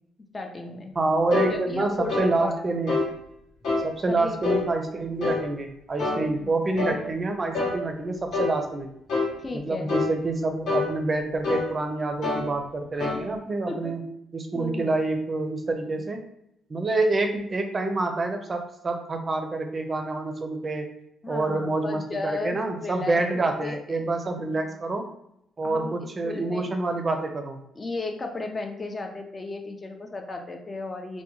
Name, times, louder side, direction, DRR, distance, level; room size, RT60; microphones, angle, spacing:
voice 1, 0.3-1.0 1.5-2.5 4.1-4.4 6.2-6.5 9.4-9.9 12.9-13.0 13.6-13.9 14.5-14.9 15.8-16.0 21.2-24.0 24.6-24.8 25.6-26.7 27.7-31.2, left 3 dB, 30° left, 4 dB, 0.5 m, -35 dB
voice 2, 1.0-3.1 3.8-9.0 9.5-14.0 14.3-16.2 16.7-20.9 21.3-25.1 25.6-27.6, right 2 dB, 30° right, 5 dB, 0.5 m, -27 dB
sound 1, 1.3-1.5 2.1-2.3 2.9-3.1 3.6-3.9 4.4-4.7 5.2-5.5 6.0-6.2 6.8-7.0 7.5-7.8 8.3-8.6 9.1-9.3 9.9-10.1 10.7-10.9 11.4-11.7 12.2-12.5 13.0-13.2, left 3 dB, 70° left, 1.0 m, -26 dB
3.4 x 2.2 x 3.0 m, 0.76 s
cardioid pair, 90°, 0 cm